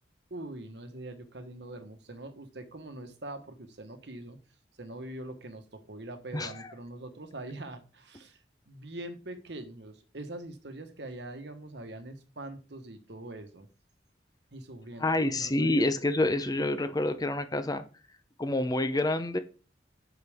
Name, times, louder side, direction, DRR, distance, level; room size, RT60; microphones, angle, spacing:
voice 1, 0.3-4.4 4.8-13.7 14.5-15.8, right 1 dB, 65° right, 8 dB, 1.3 m, -43 dB
voice 2, 6.3-6.7 15.0-17.8 18.4-19.4, left 2 dB, 20° left, 10 dB, 0.7 m, -28 dB
8.5 x 6.0 x 3.6 m, 0.35 s
head